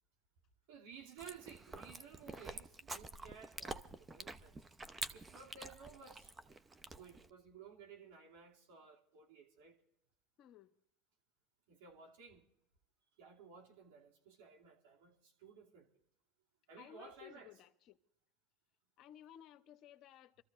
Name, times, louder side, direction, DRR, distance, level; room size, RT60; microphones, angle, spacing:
voice 1, 0.7-4.6 5.1-6.3 6.8-9.8 11.7-12.4 13.2-15.9 16.7-17.5, right 6 dB, 75° right, 2.7 m, -56 dB
Chewing mastication, 1.2-7.3, right 3 dB, 20° right, 0.8 m, -48 dB
voice 2, 10.4-10.7 16.8-18.0 19.0-20.4, left 11 dB, 55° left, 0.8 m, -57 dB
27.0 x 14.0 x 2.6 m
hypercardioid pair, 85°, 0 cm